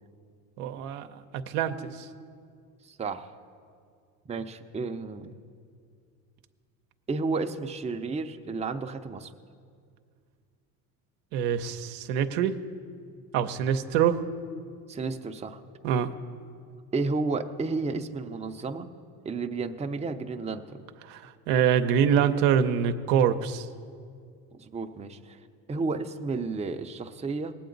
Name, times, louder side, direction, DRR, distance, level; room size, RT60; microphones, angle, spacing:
voice 1, 0.6-2.1 11.3-12.6 13.3-14.2 15.8-16.1 21.0-23.7, right 8 dB, 80° right, 7 dB, 0.7 m, -25 dB
voice 2, 2.8-3.3 4.3-5.3 7.1-9.3 14.9-15.6 16.9-18.9 19.2-20.8 24.5-25.4 25.7-27.5, right 3 dB, 15° right, 5 dB, 0.6 m, -32 dB
19.0 x 8.6 x 3.9 m, 2.2 s
supercardioid pair, 85°, 40 cm